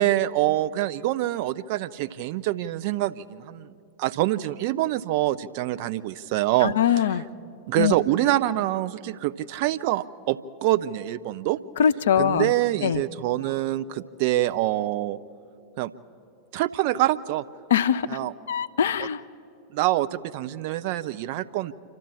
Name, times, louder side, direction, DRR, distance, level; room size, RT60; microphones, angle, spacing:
voice 1, 0.0-7.2 7.7-11.6 12.2-15.2 15.8-15.9 16.5-17.4 18.1-18.3 19.0-19.1 19.7-21.7, right 15 dB, 45° right, 12 dB, 0.5 m, -25 dB
voice 2, 6.6-7.2 7.8-8.0 11.8-12.5 12.8-13.0 17.7-18.2 18.5-19.2, left 8 dB, 60° left, 13 dB, 0.6 m, -22 dB
27.5 x 12.0 x 8.5 m, 2.5 s
figure-of-eight pair, 90°, 0 cm